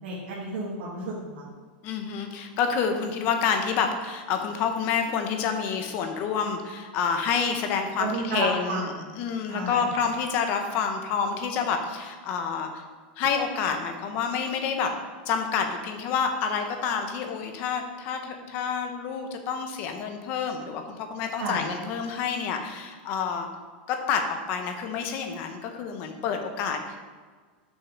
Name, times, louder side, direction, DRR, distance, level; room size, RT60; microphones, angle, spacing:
voice 1, 0.0-1.5 8.0-8.9 9.5-9.8 21.4-21.6, right 2 dB, 70° right, -7 dB, 2.1 m, -31 dB
voice 2, 1.8-12.8 13.2-14.9 15.3-23.5 23.9-27.0, left 6 dB, 35° left, 5 dB, 0.9 m, -28 dB
6.5 x 5.8 x 5.1 m, 1.5 s
supercardioid pair, 170°, 6 cm